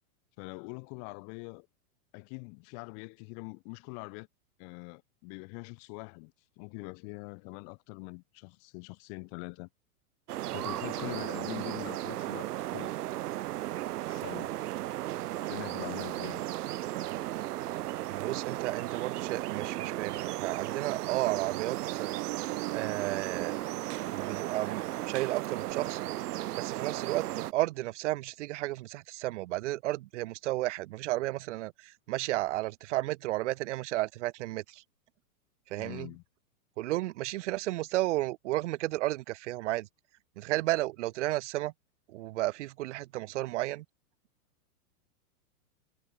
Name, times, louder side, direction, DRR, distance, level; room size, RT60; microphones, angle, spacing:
voice 1, 0.4-1.7 2.1-4.3 4.6-9.7 10.5-12.9 14.1-14.5 15.5-16.4 35.8-36.2, left 40 dB or more, 30° left, 1.0 m, -43 dB
sound 1, 10.3-27.5, right 15 dB, 90° right, 0.7 m, -35 dB
voice 2, 18.1-22.2 22.7-23.6 24.1-26.0 26.5-34.8 35.7-36.1 36.8-39.9 40.4-41.7 42.1-43.9, right 17 dB, 50° right, 1.9 m, -33 dB
sound 2, 20.2-25.7, right 28 dB, 25° right, 0.7 m, -43 dB
supercardioid pair, 160°, 45 cm